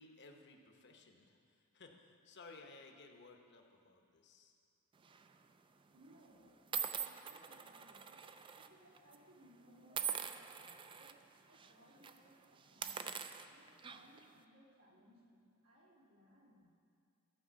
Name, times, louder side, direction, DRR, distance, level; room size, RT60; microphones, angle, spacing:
voice 1, 0.0-1.4 1.7-4.5, left 3 dB, 55° left, 4 dB, 0.9 m, -58 dB
sound 1, 5.0-5.3 6.1-6.2 6.7-8.7 8.9-9.1 9.9-11.1 11.5-11.7 12.0-12.2 12.7-14.2, right 7 dB, 25° right, 0.3 m, -43 dB
voice 2, 5.9-8.2 8.5-11.2 11.4-13.2 13.5-16.7, equal, 85° right, -5 dB, 2.5 m, -65 dB
12.5 x 4.9 x 7.2 m, 2.4 s
head